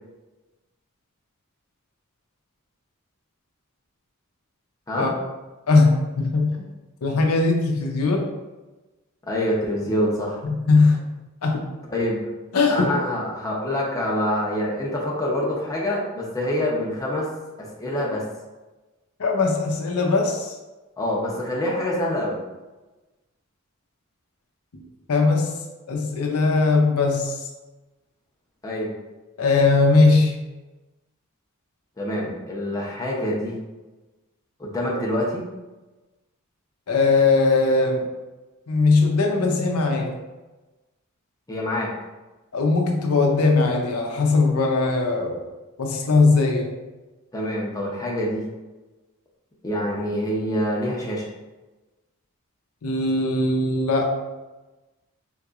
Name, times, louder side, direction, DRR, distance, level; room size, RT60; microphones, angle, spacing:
voice 1, 5.7-6.6 7.0-8.3 10.4-11.0 11.4-11.7 12.5-12.9 19.2-20.5 25.1-25.5 25.9-27.4 29.4-30.4 36.9-38.1 38.7-40.1 42.5-45.4 45.8-46.8 52.8-54.1, left 3 dB, 90° left, 1 dB, 0.6 m, -20 dB
voice 2, 9.3-10.4 11.9-12.3 12.7-17.3 17.6-18.2 21.0-22.4 28.6-28.9 32.0-33.6 34.6-35.4 41.5-41.9 47.3-48.4 49.6-51.3, left 1 dB, 15° left, -4 dB, 0.6 m, -26 dB
3.7 x 2.9 x 2.4 m, 1.1 s
head